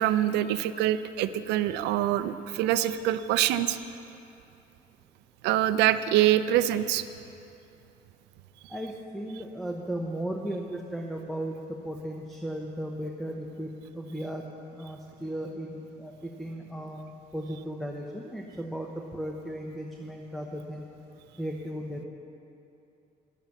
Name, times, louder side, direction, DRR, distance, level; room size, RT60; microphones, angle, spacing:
voice 1, 0.0-3.8 5.4-7.0, right 12 dB, 90° right, 12 dB, 0.5 m, -25 dB
voice 2, 8.7-20.9 21.4-22.0, right 1 dB, ahead, 1 dB, 0.9 m, -36 dB
11.0 x 10.0 x 7.0 m, 2.8 s
cardioid pair, 110°, 17 cm